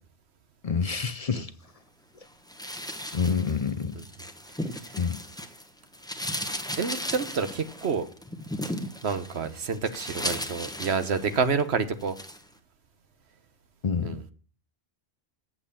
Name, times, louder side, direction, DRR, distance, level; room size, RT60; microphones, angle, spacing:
voice 1, 0.6-1.5 3.1-4.0 5.0-5.2 13.8-14.2, left 6 dB, 45° left, 0.6 m, -27 dB
sound 1, 2.5-5.6 5.9-11.6 12.0-12.4, left 1 dB, 5° left, 1.0 m, -36 dB
voice 2, 6.8-8.1 9.0-12.1 14.0-14.2, right 5 dB, 90° right, 1.3 m, -28 dB
8.1 x 7.5 x 8.5 m
omnidirectional pair, 1.1 m